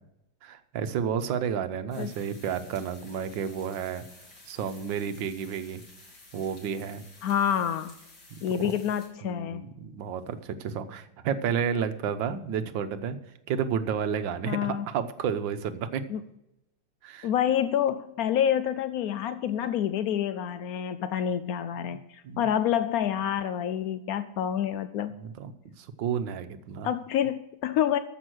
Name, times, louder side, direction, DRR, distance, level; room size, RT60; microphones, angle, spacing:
voice 1, 0.4-4.0 4.5-5.8 6.3-7.0 8.5-8.6 9.2-13.2 13.5-16.0 17.0-17.3 21.8-22.0 22.2-22.5 25.2-25.5 25.8-26.9, right 7 dB, 70° right, 10 dB, 1.5 m, -31 dB
sound 1, 1.9-9.1, left 2 dB, 65° left, 3.8 m, -53 dB
voice 2, 7.2-7.9 8.4-9.6 14.5-14.9 16.1-16.2 17.2-25.2 26.8-28.0, left 9 dB, 80° left, 12 dB, 0.8 m, -28 dB
14.0 x 6.5 x 6.2 m, 0.85 s
omnidirectional pair, 2.2 m